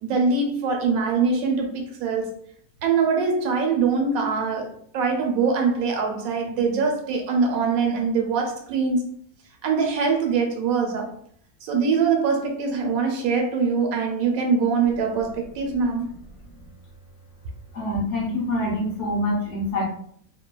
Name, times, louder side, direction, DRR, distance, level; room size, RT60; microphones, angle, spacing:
voice 1, 0.0-2.3 2.8-9.0 9.6-11.1 11.6-16.1, right 5 dB, 75° right, 2 dB, 1.0 m, -23 dB
voice 2, 17.7-19.8, left 1 dB, 60° left, -2 dB, 1.0 m, -25 dB
2.8 x 2.2 x 2.2 m, 0.63 s
omnidirectional pair, 1.5 m